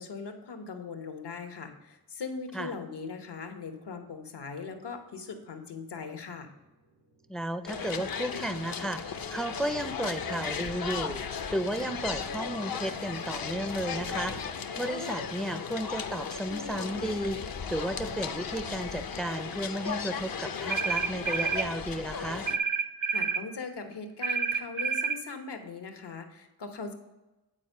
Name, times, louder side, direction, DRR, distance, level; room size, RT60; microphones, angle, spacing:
voice 1, 0.0-6.5 23.1-26.9, left 4 dB, 80° left, 6 dB, 1.1 m, -40 dB
sound 1, 3.6-14.4, right 2 dB, 80° right, 2.1 m, -54 dB
voice 2, 7.3-14.3 14.8-17.4 17.7-22.5, right 1 dB, ahead, 10 dB, 0.4 m, -33 dB
sound 2, 7.7-22.6, left 6 dB, 60° left, 0.6 m, -36 dB
sound 3, 20.7-21.7 22.5-23.4 24.2-25.2, right 6 dB, 50° right, 0.6 m, -29 dB
8.7 x 4.4 x 5.4 m, 1.0 s
wide cardioid pair, 60°, 41 cm